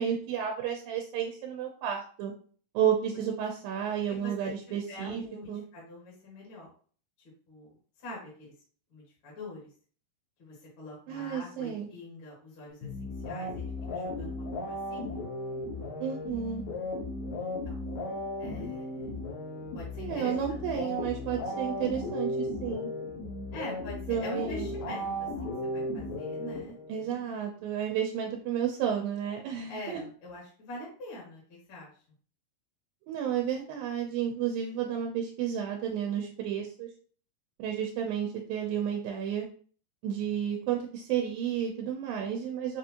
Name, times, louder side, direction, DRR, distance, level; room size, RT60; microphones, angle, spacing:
voice 1, 0.0-2.3 2.7-5.2 5.5-5.6 11.1-11.9 16.0-16.6 20.0-22.9 24.1-24.7 26.9-30.0 33.1-36.9 37.6-39.5 40.0-42.8, right 8 dB, 90° right, 1 dB, 2.5 m, -32 dB
voice 2, 4.1-6.7 7.5-8.5 8.9-9.7 10.4-15.2 17.4-17.8 18.4-19.1 19.7-20.7 23.5-26.8 29.7-31.9, left 1 dB, 40° left, -6 dB, 2.1 m, -44 dB
sound 1, 12.8-27.1, left 1 dB, 80° left, 2.8 m, -36 dB
6.8 x 2.6 x 2.8 m, 0.43 s
omnidirectional pair, 4.0 m